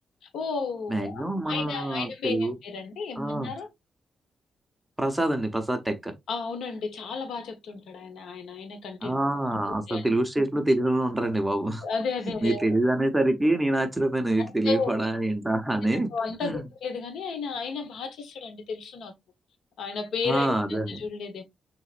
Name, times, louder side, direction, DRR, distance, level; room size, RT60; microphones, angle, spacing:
voice 1, 0.3-3.7 6.3-9.1 9.5-10.1 11.8-12.8 14.4-15.1 16.1-19.1 19.8-21.4, left 5 dB, 80° left, 1.1 m, -33 dB
voice 2, 0.9-2.5 3.2-3.5 5.0-6.1 9.0-11.8 12.4-16.1 16.4-16.6 20.2-21.0, right 1 dB, 5° right, 0.8 m, -26 dB
6.2 x 2.9 x 2.5 m
wide cardioid pair, 140°, 0 cm